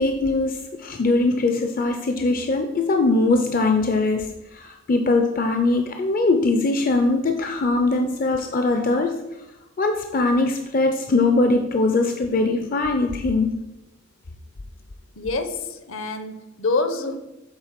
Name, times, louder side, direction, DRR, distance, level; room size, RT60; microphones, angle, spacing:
voice 1, 0.0-9.2 9.8-13.7, left 2 dB, 40° left, 5 dB, 0.4 m, -21 dB
voice 2, 15.2-17.2, left 3 dB, 65° left, 8 dB, 0.8 m, -26 dB
7.9 x 3.7 x 5.7 m, 0.97 s
head